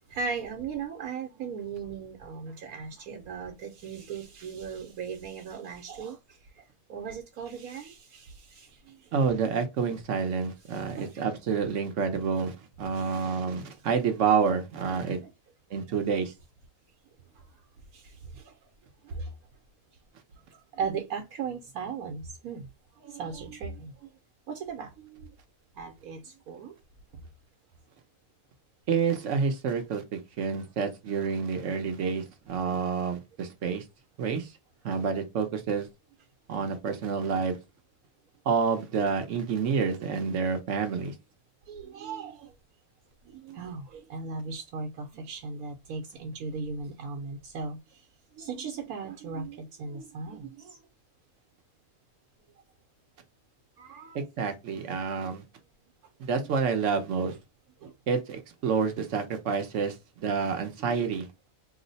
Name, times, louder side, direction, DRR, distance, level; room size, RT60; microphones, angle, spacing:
voice 1, 0.1-6.6 6.9-9.3 10.7-11.3 12.9-13.5 15.0-15.3 17.9-18.6 19.0-19.3 20.7-22.7 23.0-24.1 24.5-25.3 25.7-26.7 31.8-32.0 41.7-42.5 43.2-48.0 48.4-50.8 53.8-54.5 54.8-54.9 57.8-57.9 60.8-61.1, right 5 dB, 85° right, 1.2 m, -38 dB
voice 2, 9.1-15.2 15.7-16.3 28.9-33.8 34.2-34.5 34.8-35.9 36.5-37.6 38.5-41.1 54.4-55.4 56.2-57.3 58.1-61.3, right 6 dB, 60° right, 1.0 m, -28 dB
3.1 x 2.0 x 3.9 m
omnidirectional pair, 1.5 m